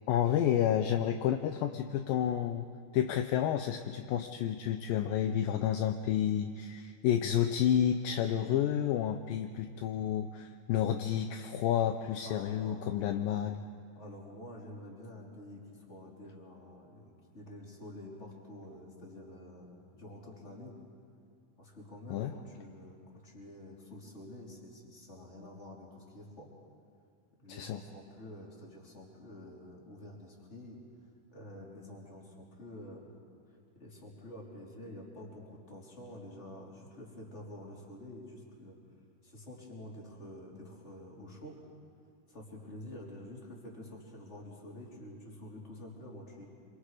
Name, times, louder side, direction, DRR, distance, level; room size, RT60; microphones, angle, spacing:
voice 1, 0.1-2.7 2.9-13.6 22.1-22.3 27.5-27.8, left 10 dB, 80° left, 7 dB, 2.3 m, -30 dB
voice 2, 12.2-13.4 13.9-20.8 21.6-26.5 27.4-30.8 31.3-33.1 33.5-38.8 39.2-41.6 42.3-46.4, left 1 dB, 20° left, -3 dB, 3.5 m, -48 dB
27.0 x 25.5 x 5.0 m, 2.2 s
omnidirectional pair, 4.4 m